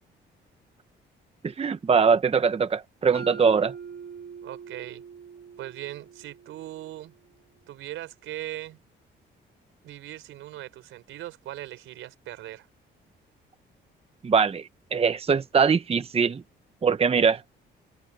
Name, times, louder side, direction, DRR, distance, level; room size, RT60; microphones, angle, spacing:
voice 1, 1.4-3.7 14.2-16.4 16.8-17.4, right 6 dB, 30° right, 0.9 m, -22 dB
Mallet percussion, 3.1-7.2, right 6 dB, 55° right, 1.4 m, -43 dB
voice 2, 4.4-5.0 5.6-7.1 7.7-8.8 9.8-12.7, right 14 dB, 85° right, 4.2 m, -39 dB
cardioid pair, 90°, 20 cm